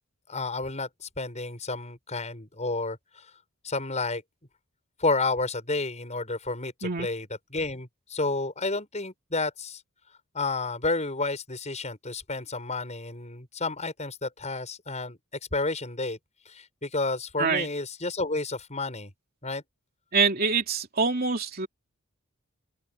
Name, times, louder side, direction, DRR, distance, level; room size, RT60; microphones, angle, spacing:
voice 1, 0.3-3.0 3.6-4.2 5.0-9.8 10.3-15.2 15.5-16.2 16.5-19.1 19.4-19.6, left 3 dB, 30° left, 7.2 m, -31 dB
voice 2, 20.1-21.7, right 5 dB, 45° right, 3.0 m, -25 dB
open air
head